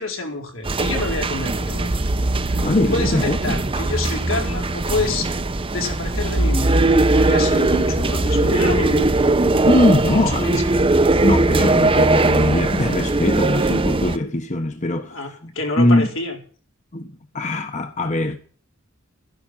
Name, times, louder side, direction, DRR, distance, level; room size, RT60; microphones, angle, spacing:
voice 1, 0.0-2.1 2.4-5.3 5.7-6.8 7.1-9.3 10.0-10.8 15.1-16.4, left 3 dB, 85° left, 4.4 m, -28 dB
sound 1, 0.6-14.2, right 2 dB, 25° right, 0.8 m, -19 dB
voice 2, 2.5-3.6 5.8-5.9 9.6-10.6 11.2-15.5 15.8-16.1 16.9-18.4, left 1 dB, 35° left, 1.3 m, -21 dB
13.0 x 11.0 x 7.4 m
head